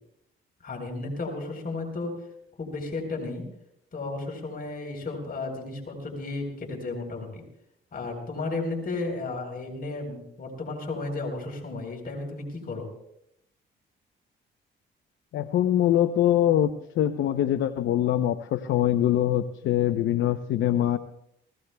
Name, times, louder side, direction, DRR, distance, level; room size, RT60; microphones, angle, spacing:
voice 1, 0.6-2.1 2.6-3.5 3.9-7.4 7.9-12.9, left 3 dB, 50° left, 2 dB, 4.0 m, -33 dB
voice 2, 15.3-16.7 17.0-21.0, left 11 dB, 75° left, 9 dB, 0.7 m, -23 dB
28.5 x 17.5 x 2.3 m, 0.78 s
cardioid pair, 90°, 20 cm